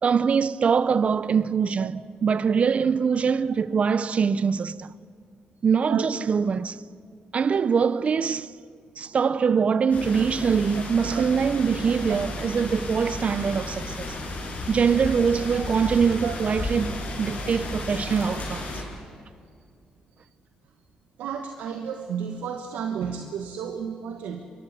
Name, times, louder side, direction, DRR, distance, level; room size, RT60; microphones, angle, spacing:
voice 1, 0.0-4.9 5.6-6.8 7.3-8.5 9.0-14.1 14.7-18.6, right 6 dB, 50° right, 0.7 m, -23 dB
sound 1, 9.9-18.8, left 2 dB, 60° left, 6.7 m, -33 dB
voice 2, 21.2-24.4, right 7 dB, 85° right, 1.3 m, -32 dB
23.0 x 19.0 x 8.2 m
cardioid pair, 70°, 3 cm